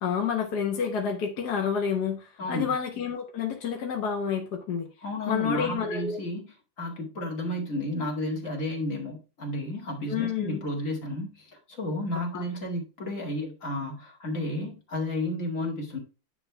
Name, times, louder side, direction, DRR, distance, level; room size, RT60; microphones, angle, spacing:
voice 1, 0.0-4.9 5.3-6.2 10.1-10.6 12.1-12.4, left 7 dB, 65° left, 2 dB, 1.6 m, -29 dB
voice 2, 2.4-2.7 5.0-6.5 6.8-16.0, left 1 dB, 45° left, 0 dB, 2.4 m, -32 dB
9.9 x 3.5 x 4.5 m, 0.32 s
omnidirectional pair, 1.9 m